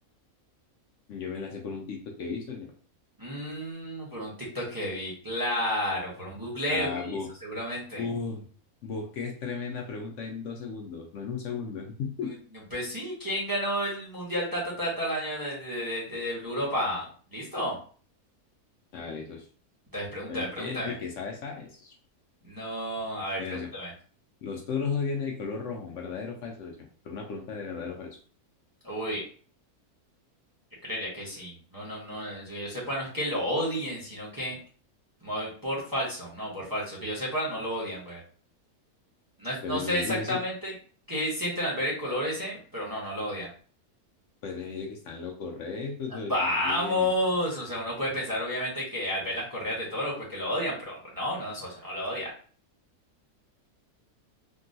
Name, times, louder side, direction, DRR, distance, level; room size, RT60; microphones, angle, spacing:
voice 1, 1.1-2.7 6.7-7.3 8.0-8.5 8.8-12.3 18.9-19.5 20.3-22.0 23.4-23.7 24.4-28.2 39.6-40.4 44.4-47.1, left 5 dB, 65° left, 2 dB, 0.8 m, -35 dB
voice 2, 3.2-8.0 12.7-17.0 17.3-17.8 19.9-20.9 22.5-23.4 23.7-23.9 28.8-29.2 30.8-34.6 35.2-38.2 39.4-40.7 41.1-43.5 46.1-52.3, equal, 20° right, -5 dB, 0.8 m, -31 dB
3.7 x 2.2 x 2.6 m, 0.42 s
omnidirectional pair, 1.6 m